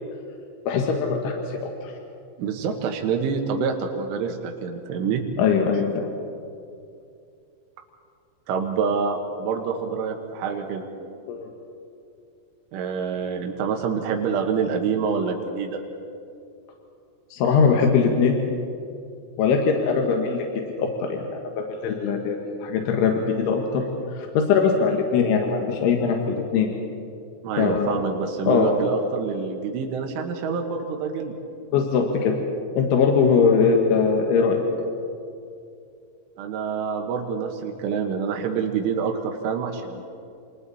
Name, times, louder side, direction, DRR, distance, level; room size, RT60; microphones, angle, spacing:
voice 1, 0.7-1.9 5.4-6.1 11.3-11.5 17.3-18.4 19.4-20.5 20.8-23.8 24.2-26.7 27.6-28.0 28.5-28.9 31.7-32.4 32.8-34.6, left 5 dB, 80° left, 1 dB, 4.0 m, -21 dB
voice 2, 2.4-5.2 8.5-10.8 12.7-15.8 27.4-31.4 36.4-40.0, right 6 dB, 90° right, 2 dB, 3.9 m, -27 dB
30.0 x 28.0 x 4.2 m, 2.5 s
omnidirectional pair, 5.4 m